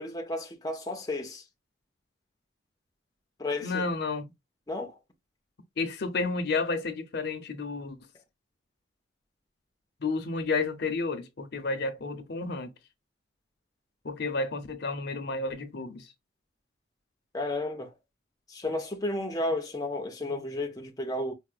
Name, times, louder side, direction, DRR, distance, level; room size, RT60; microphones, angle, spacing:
voice 1, 0.0-1.4 3.4-3.8 4.7-5.0 17.3-17.9 18.5-21.3, left 2 dB, 20° left, 0.5 m, -32 dB
voice 2, 3.6-4.3 5.8-8.0 10.0-12.7 14.0-16.1, left 3 dB, 55° left, 0.6 m, -31 dB
4.8 x 2.0 x 2.4 m
head